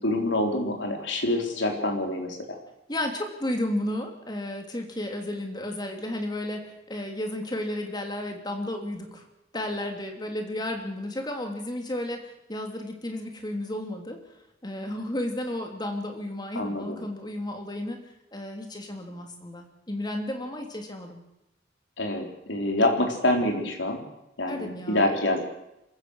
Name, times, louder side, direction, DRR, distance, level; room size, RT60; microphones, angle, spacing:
voice 1, 0.0-2.4 16.6-17.0 22.0-24.0 24.4-25.4, left 1 dB, 80° left, 2 dB, 4.0 m, -26 dB
voice 2, 2.9-9.3 9.5-14.2 14.6-18.0 18.3-21.2 24.5-25.1, left 1 dB, 20° left, 4 dB, 3.1 m, -33 dB
26.5 x 15.5 x 6.5 m, 0.87 s
head